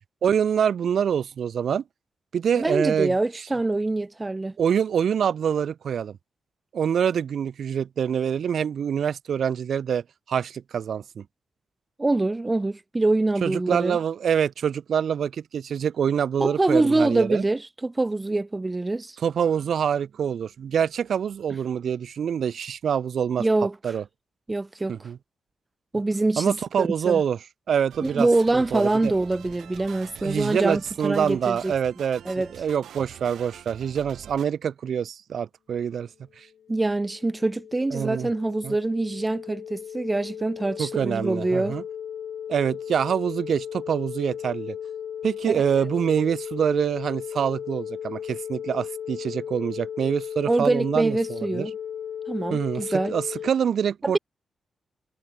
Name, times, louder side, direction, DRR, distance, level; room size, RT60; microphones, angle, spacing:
voice 1, 0.2-1.8 2.3-3.1 4.6-6.2 6.7-11.2 13.4-17.5 19.2-23.5 23.8-24.0 24.9-25.2 26.4-27.4 27.7-28.3 28.5-29.1 30.2-36.1 36.4-36.5 37.9-38.3 38.6-38.7 40.8-41.8 42.5-44.8 45.2-51.7 52.5-54.2, right 8 dB, 55° right, 1.8 m, -25 dB
voice 2, 2.6-4.5 12.0-14.0 16.4-19.2 23.4-24.0 24.5-25.1 25.9-27.2 28.0-31.7 32.2-32.5 36.7-41.8 50.4-51.7 52.3-53.1 54.0-54.2, right 2 dB, 15° right, 1.2 m, -25 dB
sound 1, 27.9-34.5, right 10 dB, 80° right, 3.1 m, -45 dB
sound 2, 36.5-53.5, left 8 dB, 60° left, 2.5 m, -36 dB
wide cardioid pair, 175°, 0 cm